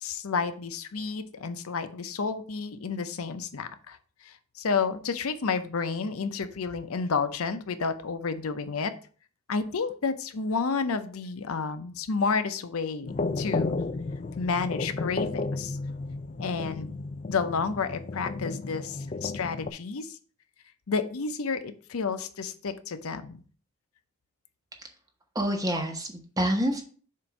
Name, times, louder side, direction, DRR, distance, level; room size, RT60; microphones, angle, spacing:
voice 1, 0.0-4.0 4.2-8.9 9.5-13.8 14.4-15.8 16.4-16.9 17.3-20.2 20.9-23.4, left 5 dB, 85° left, 10 dB, 0.6 m, -31 dB
sound 1, 13.1-19.7, left 3 dB, 35° left, 0.4 m, -33 dB
voice 2, 25.3-26.8, equal, 15° right, 3 dB, 1.0 m, -27 dB
7.4 x 2.6 x 5.8 m, 0.41 s
head